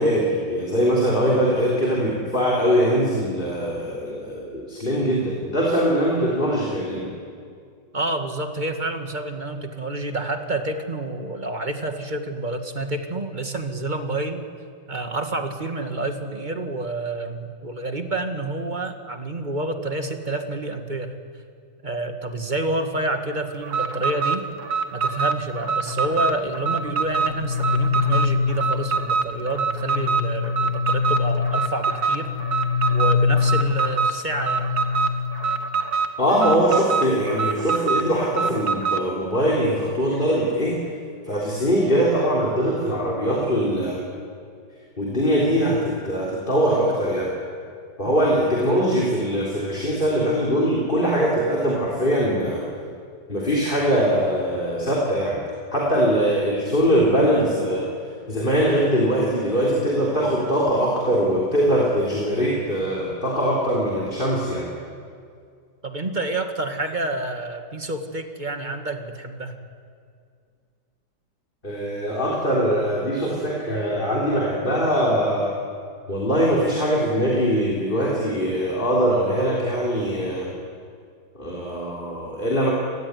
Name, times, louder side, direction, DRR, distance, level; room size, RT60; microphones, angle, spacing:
voice 1, 0.0-7.1 36.2-40.8 41.3-44.0 45.0-47.3 48.0-52.6 53.3-55.4 55.7-57.9 58.3-64.7 71.6-75.6 76.1-80.5 81.3-82.7, equal, 25° left, -3 dB, 3.8 m, -22 dB
voice 2, 1.5-2.0 7.9-14.4 14.9-21.2 21.8-24.4 24.9-32.3 32.9-34.7 48.1-48.2 65.8-69.6, right 2 dB, 25° right, 6 dB, 1.9 m, -28 dB
Alarm, 23.6-39.1, right 5 dB, 55° right, 1.9 m, -25 dB
sound 1, 25.9-35.7, left 6 dB, 55° left, 3.0 m, -25 dB
27.0 x 20.0 x 9.7 m, 2.2 s
omnidirectional pair, 2.1 m